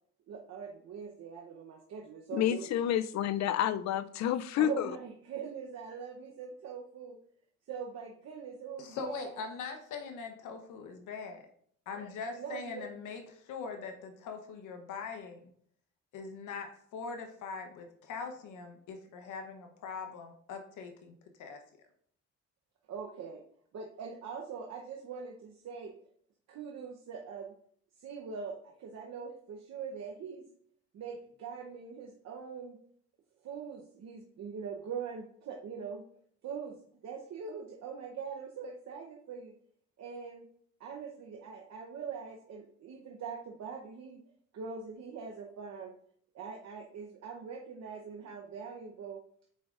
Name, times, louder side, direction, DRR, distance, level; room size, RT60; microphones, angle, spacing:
voice 1, 0.3-2.7 4.6-7.2 7.7-9.3 12.3-12.8 22.9-23.4 23.7-25.9 26.5-27.5 28.0-30.4 30.9-32.8 33.4-36.0 36.4-36.8 37.0-39.5 40.0-40.4 40.8-44.2 44.5-45.9 46.3-49.2, right 6 dB, 60° right, 1 dB, 0.9 m, -42 dB
voice 2, 2.3-5.0, left 11 dB, 65° left, 14 dB, 0.4 m, -29 dB
voice 3, 8.8-11.4 11.9-15.4 16.1-21.1 21.4-21.6, left 5 dB, 80° left, 5 dB, 0.9 m, -42 dB
7.8 x 5.1 x 2.5 m, 0.63 s
cardioid pair, 90°, 30 cm